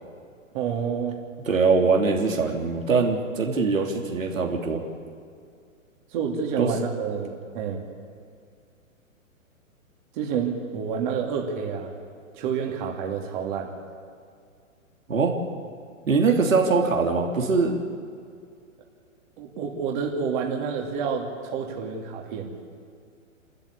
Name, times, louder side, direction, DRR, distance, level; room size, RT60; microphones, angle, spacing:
voice 1, 0.5-1.2 6.1-7.8 10.1-11.9 12.3-13.7 19.4-22.5, right 6 dB, 35° right, 0 dB, 3.1 m, -29 dB
voice 2, 1.4-4.8 6.6-6.7 15.1-15.3 16.1-17.8, right 4 dB, 70° right, 1 dB, 3.4 m, -22 dB
28.5 x 13.5 x 8.6 m, 2.2 s
figure-of-eight pair, 120°, 41 cm